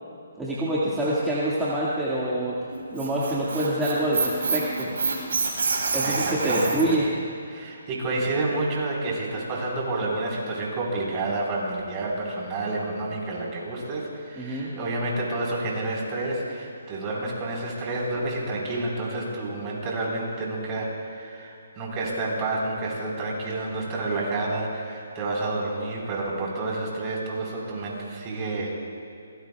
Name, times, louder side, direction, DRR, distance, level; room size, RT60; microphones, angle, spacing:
voice 1, 0.4-2.6 2.9-4.9 5.9-7.1 14.4-14.7, right 1 dB, 5° right, -9 dB, 1.9 m, -26 dB
Squeak, 2.7-7.0, right 4 dB, 70° right, 4.3 m, -27 dB
voice 2, 6.0-7.0 7.5-28.8, right 2 dB, 25° right, -3 dB, 4.3 m, -29 dB
24.0 x 19.0 x 2.4 m, 2.6 s
hypercardioid pair, 150°, 0 cm